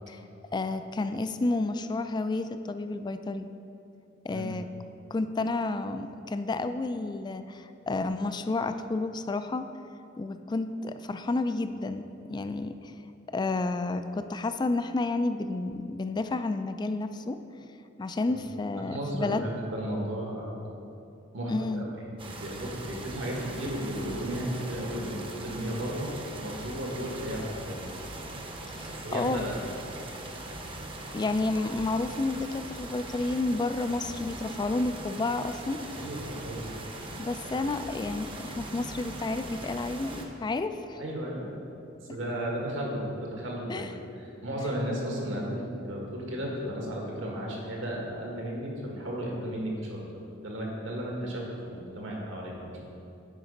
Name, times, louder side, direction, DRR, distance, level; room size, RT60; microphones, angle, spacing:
voice 1, 0.5-3.5 4.2-4.7 5.1-9.7 10.2-12.9 13.3-17.4 18.0-19.5 21.5-21.9 28.7-29.4 31.1-35.8 37.2-41.0 43.7-43.9, left 2 dB, 20° left, 10 dB, 0.3 m, -31 dB
voice 2, 18.9-20.6 21.3-26.1 26.4-27.9 28.9-29.6 36.0-36.7 37.5-37.8 41.0-41.5 42.0-43.0 43.3-43.9 44.2-50.0 50.4-52.8, right 1 dB, 75° right, -2 dB, 1.7 m, -34 dB
sound 1, 22.2-40.3, right 2 dB, 25° right, 0.8 m, -41 dB
9.2 x 4.8 x 5.2 m, 2.7 s
head